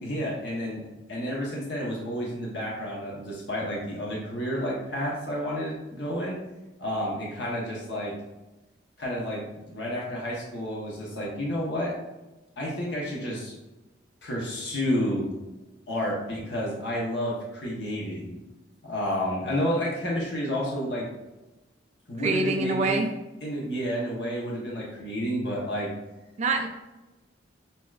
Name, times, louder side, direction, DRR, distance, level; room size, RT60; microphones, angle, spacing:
voice 1, 0.0-6.4 6.8-8.1 9.0-11.9 12.6-13.5 14.2-15.3 15.9-18.4 18.8-21.1 22.1-23.0 23.4-25.9, equal, 65° left, -4 dB, 1.2 m, -30 dB
voice 2, 22.2-23.1 26.4-26.7, right 3 dB, 40° right, 3 dB, 0.4 m, -25 dB
6.8 x 3.0 x 2.4 m, 1.1 s
head